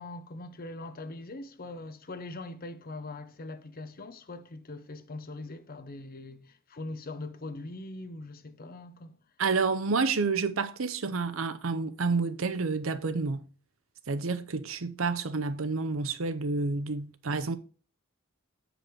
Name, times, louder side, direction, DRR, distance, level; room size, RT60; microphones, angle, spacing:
voice 1, 0.0-9.2, left 2 dB, 45° left, 0.8 m, -42 dB
voice 2, 9.4-13.5 14.1-17.6, right 4 dB, 70° right, 0.7 m, -29 dB
7.8 x 5.1 x 4.6 m
head